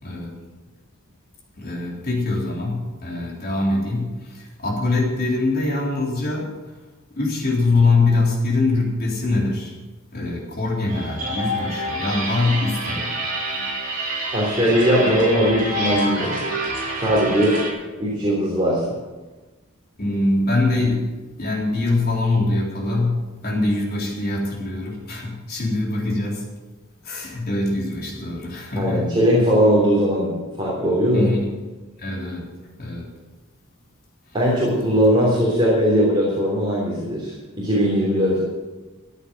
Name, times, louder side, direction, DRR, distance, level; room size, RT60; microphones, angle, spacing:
voice 1, 0.0-0.3 1.6-6.5 7.1-9.8 10.1-13.2 20.0-26.4 27.0-29.1 31.1-31.5 32.0-32.5 32.8-33.1 35.2-35.3, left 2 dB, 45° left, -2 dB, 3.6 m, -23 dB
sound 1, 10.9-17.7, right 1 dB, 40° right, 5.3 m, -27 dB
voice 2, 14.3-16.5 16.9-17.6 18.0-19.0 28.8-30.3 30.6-31.3 34.3-38.4, equal, 20° right, -5 dB, 3.4 m, -19 dB
14.5 x 8.5 x 7.7 m, 1.2 s
head